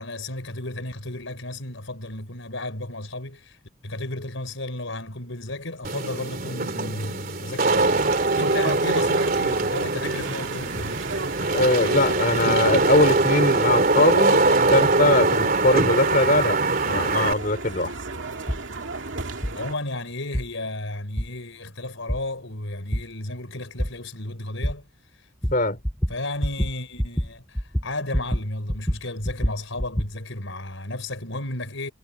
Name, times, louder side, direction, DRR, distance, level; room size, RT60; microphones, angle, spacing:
voice 1, 0.0-11.0 19.5-24.9 25.2-25.3 26.1-31.9, left 2 dB, 70° left, 4.7 m, -33 dB
Wind / Rain, 5.8-17.3, right 3 dB, 45° right, 3.4 m, -22 dB
sound 1, 7.6-19.7, right 3 dB, 65° right, 2.4 m, -33 dB
voice 2, 11.5-14.4 14.7-16.6 16.9-17.9 25.5-25.8, left 2 dB, 40° left, 5.6 m, -21 dB
sound 2, 18.5-18.6 19.4-19.5 20.3-20.5 21.2-21.3 22.1-22.2 22.9-23.0 23.8-23.9 24.6-24.7 25.4-25.6 25.8-26.2 26.4-26.7 27.0-27.3 27.6-28.4 28.7-30.1, equal, 5° left, 0.9 m, -25 dB
head